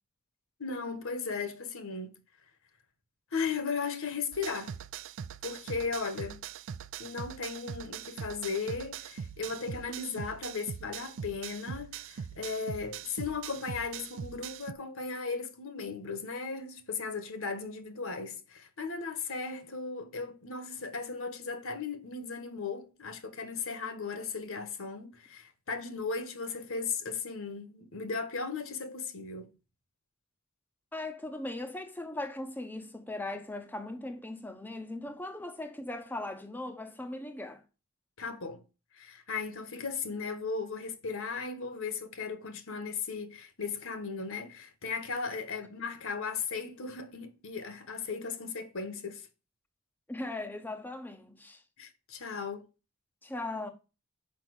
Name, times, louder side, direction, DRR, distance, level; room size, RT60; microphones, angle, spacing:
voice 1, 0.6-2.2 3.3-4.8 5.4-6.4 7.0-29.5 38.2-38.6 38.9-49.3 51.8-52.6, left 5 dB, 60° left, 1.4 m, -36 dB
sound 1, 4.3-14.7, right 7 dB, 60° right, 0.4 m, -42 dB
voice 2, 30.9-37.6 50.1-51.6 53.2-53.7, left 2 dB, 10° left, 0.7 m, -39 dB
6.0 x 5.4 x 6.4 m
head